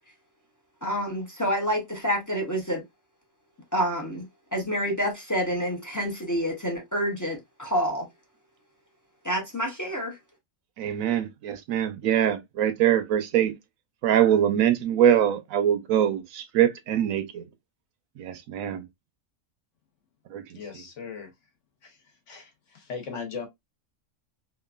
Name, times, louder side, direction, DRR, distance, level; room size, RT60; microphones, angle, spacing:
voice 1, 0.8-2.8 3.7-4.2 4.5-8.1 9.2-10.2, equal, 20° left, 0.5 m, -28 dB
voice 2, 10.8-13.5 14.0-17.4 18.2-18.8 20.3-20.6, right 10 dB, 85° right, 1.0 m, -23 dB
voice 3, 20.5-21.3 21.8-22.0 22.3-23.5, left 5 dB, 65° left, 1.2 m, -38 dB
2.9 x 2.4 x 2.3 m
omnidirectional pair, 1.4 m